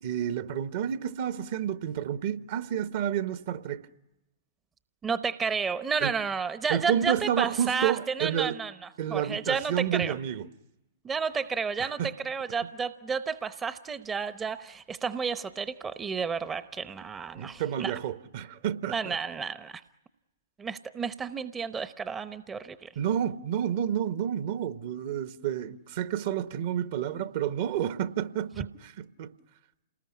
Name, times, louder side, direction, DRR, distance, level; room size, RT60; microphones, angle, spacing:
voice 1, 0.0-3.8 6.0-6.1 6.7-8.5 9.0-10.5 11.8-12.1 17.4-19.2 22.9-29.3, right 9 dB, 50° right, 1.3 m, -30 dB
voice 2, 5.0-10.1 11.0-17.9 18.9-19.8 20.6-22.9, right 5 dB, 15° right, 0.9 m, -31 dB
28.5 x 20.0 x 9.7 m
figure-of-eight pair, 115°, 0 cm